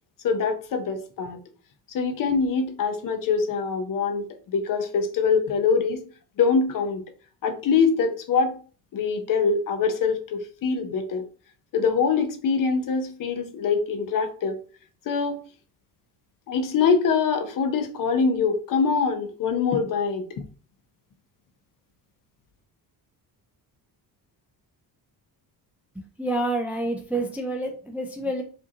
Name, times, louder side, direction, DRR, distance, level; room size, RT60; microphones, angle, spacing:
voice 1, 0.2-1.4 1.9-6.0 6.4-7.0 7.4-8.6 8.9-11.2 11.7-14.6 15.1-15.4 16.5-20.2, left 5 dB, 55° left, 0.7 m, -24 dB
voice 2, 26.2-28.4, right 1 dB, 5° right, 0.3 m, -28 dB
4.9 x 2.7 x 2.7 m
cardioid pair, 170°, 39 cm